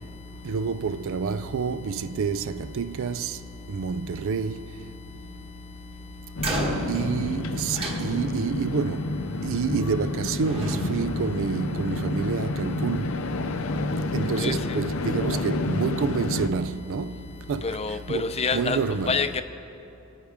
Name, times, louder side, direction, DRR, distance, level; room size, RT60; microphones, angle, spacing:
voice 1, 0.4-3.4 3.7-4.6 6.9-9.0 9.4-13.2 14.1-17.2 17.5-17.8 18.1-18.3 18.5-19.1, right 5 dB, 65° right, 0.4 m, -28 dB
sound 1, 6.4-16.5, left 2 dB, 65° left, 0.7 m, -29 dB
sound 2, 6.4-8.7 9.8-10.1 10.5-12.2, right 1 dB, 25° right, 1.4 m, -33 dB
voice 2, 17.6-18.8 19.1-19.4, left 4 dB, 30° left, 0.6 m, -26 dB
25.5 x 9.3 x 3.6 m
head